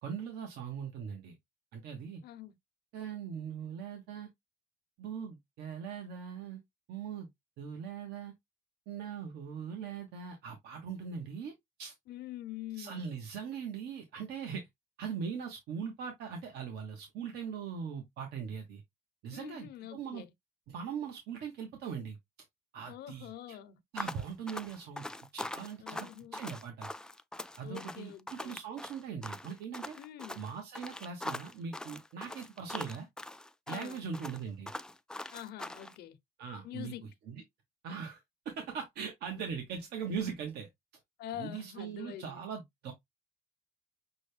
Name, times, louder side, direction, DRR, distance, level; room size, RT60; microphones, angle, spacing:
voice 1, 0.0-1.3 1.7-2.2 2.9-4.3 5.0-6.6 6.9-7.3 7.6-8.3 8.9-11.9 12.8-14.7 15.0-18.8 19.2-20.2 20.7-22.2 22.7-23.6 23.9-26.9 27.6-30.0 30.4-33.1 33.7-34.7 36.4-36.9 37.3-37.4 37.8-40.7 41.4-42.9, right 6 dB, 75° right, 1.1 m, -40 dB
voice 2, 2.2-2.5 12.1-13.1 19.3-20.3 22.9-23.8 25.8-26.4 27.6-28.6 29.9-30.4 33.7-34.0 35.3-36.2 36.6-37.1 41.2-42.4, left 12 dB, 75° left, 0.8 m, -45 dB
sound 1, 24.0-35.9, left 1 dB, 5° left, 0.3 m, -42 dB
6.2 x 2.2 x 3.3 m
cardioid pair, 110°, 17 cm